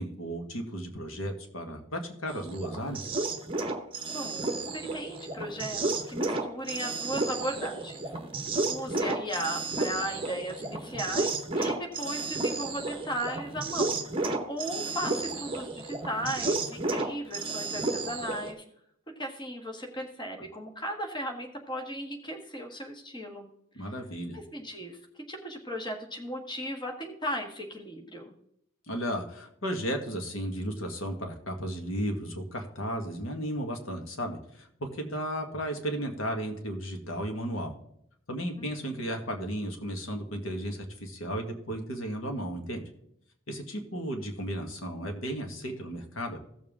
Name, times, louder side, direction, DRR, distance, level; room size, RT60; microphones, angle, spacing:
voice 1, 0.0-3.1 23.7-24.4 28.9-37.7 38.3-42.8 43.5-46.4, equal, 70° left, 4 dB, 1.6 m, -34 dB
sound 1, 2.3-18.5, right 3 dB, 25° right, 1.0 m, -32 dB
voice 2, 4.1-8.0 8.7-18.6 19.2-23.5 23.8-23.9 24.3-25.0 25.3-28.3 38.6-38.9, equal, 20° left, 2 dB, 1.4 m, -36 dB
15.5 x 7.2 x 3.7 m, 0.72 s
head